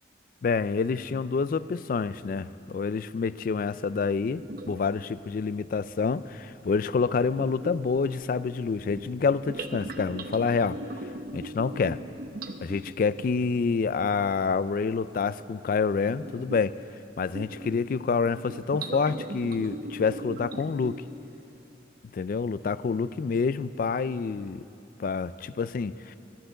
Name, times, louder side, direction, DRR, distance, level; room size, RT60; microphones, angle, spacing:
voice 1, 0.4-12.0 12.6-16.8 17.2-21.0 22.1-24.6 25.0-26.2, left 5 dB, 50° left, 16 dB, 0.3 m, -28 dB
sound 1, 4.4-5.0 5.6-5.8 7.2-13.6 16.0-16.8 17.2-17.9 18.3-21.2, right 1 dB, 55° right, 0.7 m, -39 dB
12.0 x 10.0 x 8.0 m, 2.9 s
head